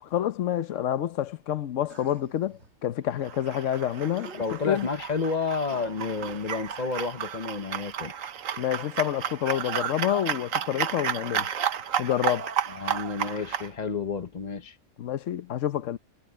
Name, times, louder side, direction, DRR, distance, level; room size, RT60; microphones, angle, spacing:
voice 1, 0.0-4.9 8.6-11.5 12.0-12.5 15.0-16.0, left 11 dB, 70° left, 1.2 m, -28 dB
sound 1, 1.9-2.8 3.5-3.6 3.8-5.0 5.7-6.8, right 5 dB, 60° right, 1.7 m, -49 dB
sound 2, 3.2-13.7, right 9 dB, 85° right, 1.4 m, -32 dB
voice 2, 4.4-8.1 12.7-14.8, left 4 dB, 35° left, 0.9 m, -30 dB
omnidirectional pair, 1.3 m